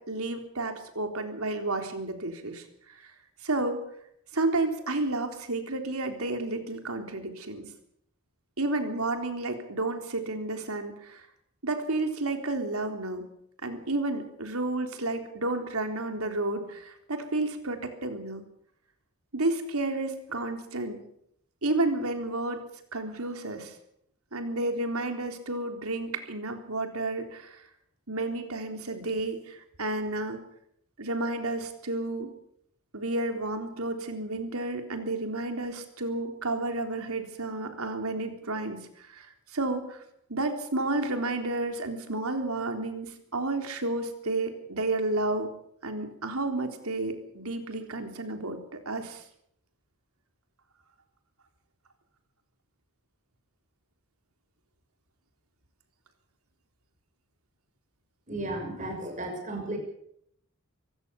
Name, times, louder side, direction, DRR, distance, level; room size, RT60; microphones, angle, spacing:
voice 1, 0.0-2.6 3.4-3.8 4.3-7.7 8.6-11.2 11.6-13.3 13.6-18.4 19.3-21.0 21.6-22.6 22.9-23.7 24.3-27.6 28.1-30.4 31.0-32.3 32.9-40.0 40.3-45.5 45.8-49.2, right 2 dB, 85° right, 5 dB, 3.7 m, -31 dB
voice 2, 58.3-59.8, right 1 dB, 35° right, 3 dB, 6.4 m, -34 dB
25.0 x 16.5 x 7.1 m, 0.72 s
head